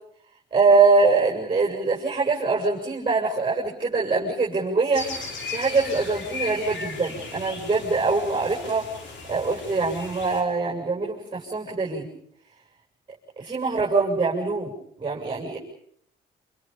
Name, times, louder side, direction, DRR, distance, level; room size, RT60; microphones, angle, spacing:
voice 1, 0.5-5.1 5.5-8.9 9.3-12.1 13.4-14.7 15.0-15.6, right 4 dB, 25° right, -2 dB, 7.9 m, -23 dB
sound 1, 4.9-10.4, left 4 dB, 65° left, 6.3 m, -36 dB
29.5 x 28.0 x 5.5 m, 0.67 s
cardioid pair, 90°, 20 cm